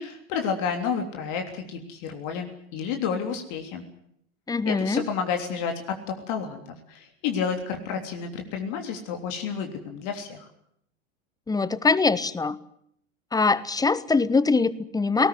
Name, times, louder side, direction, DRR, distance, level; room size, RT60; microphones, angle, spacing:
voice 1, 0.0-3.8 4.6-6.6 6.9-10.5, left 6 dB, 50° left, 4 dB, 3.4 m, -30 dB
voice 2, 4.5-5.0 11.5-12.6 13.3-15.3, left 4 dB, 10° left, 19 dB, 0.9 m, -23 dB
19.5 x 18.5 x 9.5 m, 0.70 s
figure-of-eight pair, 85°, 38 cm